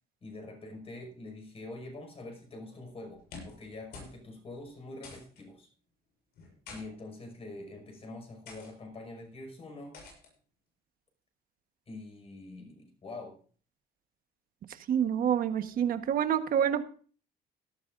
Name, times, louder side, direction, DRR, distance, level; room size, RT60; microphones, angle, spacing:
voice 1, 0.2-5.7 6.7-10.0 11.9-13.4, left 2 dB, 35° left, 4 dB, 5.5 m, -45 dB
sound 1, 3.1-3.7 3.9-4.2 4.5-4.6 5.0-5.4 6.4-6.8 7.6-7.8 8.5-8.7 9.9-10.3, left 4 dB, 75° left, 7.5 m, -47 dB
voice 2, 14.9-16.8, right 9 dB, 55° right, 9 dB, 1.3 m, -27 dB
17.5 x 13.0 x 2.6 m, 0.43 s
cardioid pair, 110°, 17 cm